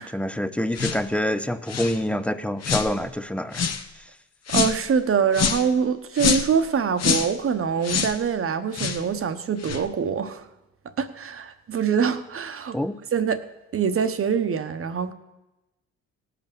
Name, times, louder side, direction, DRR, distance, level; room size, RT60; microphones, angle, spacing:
voice 1, 0.0-3.6 3.9-4.1 12.7-13.0, left 1 dB, 5° left, 11 dB, 0.6 m, -26 dB
sound 1, 0.7-1.0 1.7-2.0 2.6-2.9 3.5-3.8 4.5-4.8 5.3-5.7 6.2-6.6 7.0-7.3 7.8-8.2 8.7-9.0 9.6-9.8, left 6 dB, 55° left, 1.1 m, -25 dB
voice 2, 4.5-10.4 11.0-12.8 13.1-13.4 13.7-15.1, right 6 dB, 45° right, 10 dB, 1.1 m, -24 dB
17.5 x 6.0 x 6.8 m, 0.98 s
cardioid pair, 90°, 30 cm